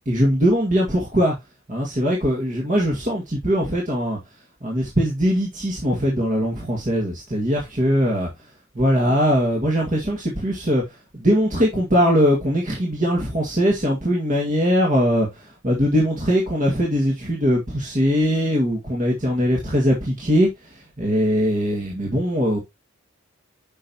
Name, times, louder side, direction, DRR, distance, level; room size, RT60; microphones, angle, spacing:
voice 1, 0.0-1.3 1.7-4.2 4.6-8.3 8.7-22.6, equal, 35° right, 1.9 m, -21 dB
8.3 x 5.6 x 2.9 m
head